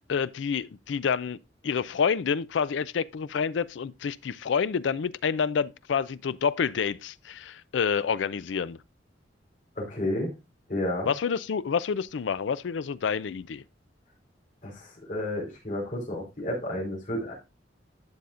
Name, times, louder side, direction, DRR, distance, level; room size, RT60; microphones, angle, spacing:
voice 1, 0.1-1.4 1.6-8.8 11.1-13.6, left 6 dB, 85° left, 0.4 m, -28 dB
voice 2, 9.8-10.3 10.7-11.1 14.6-17.3, left 1 dB, 45° left, 4.1 m, -31 dB
12.0 x 7.0 x 2.4 m
head